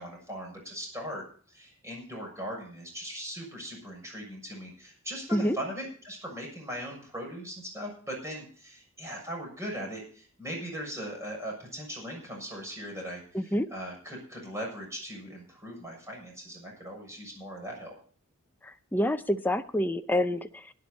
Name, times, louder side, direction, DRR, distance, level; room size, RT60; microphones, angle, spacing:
voice 1, 0.0-13.4 13.7-18.0, equal, 15° right, -1 dB, 6.9 m, -39 dB
voice 2, 13.3-13.7 18.6-20.7, left 1 dB, 10° left, 8 dB, 0.6 m, -28 dB
17.5 x 10.5 x 4.2 m, 0.43 s
head